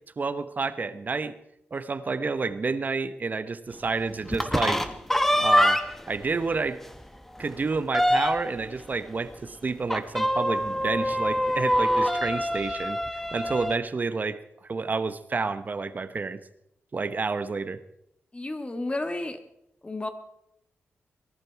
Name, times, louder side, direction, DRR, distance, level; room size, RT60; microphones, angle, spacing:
voice 1, 0.2-1.3 1.7-4.8 5.4-5.8 6.1-6.8 7.4-13.0 13.3-16.4 16.9-17.8, right 4 dB, 40° right, 13 dB, 1.0 m, -29 dB
sound 1, 4.3-6.1 6.5-6.6 7.0-7.1 7.4-8.6 9.9-13.8, equal, 5° left, 1.1 m, -25 dB
voice 2, 18.3-19.4 19.8-20.1, left 2 dB, 25° left, 9 dB, 1.7 m, -31 dB
21.5 x 11.5 x 4.7 m, 0.78 s
cardioid pair, 75°, 4 cm